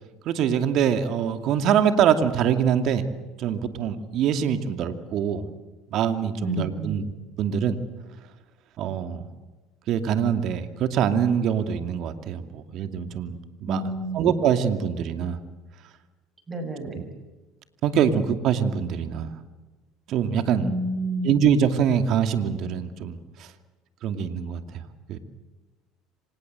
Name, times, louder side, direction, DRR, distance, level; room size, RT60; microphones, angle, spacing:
voice 1, 0.3-3.1 3.4-5.5 5.9-7.1 7.4-7.8 8.8-9.3 9.9-15.4 16.9-17.0 17.8-19.3 20.1-20.7 21.2-23.5 24.0-25.2, right 8 dB, 60° right, 8 dB, 2.5 m, -24 dB
voice 2, 6.4-7.0 13.7-14.3 16.5-17.1 20.6-21.3, right 1 dB, 25° right, 9 dB, 6.0 m, -30 dB
26.0 x 19.0 x 7.9 m, 1.2 s
supercardioid pair, 85°, 0 cm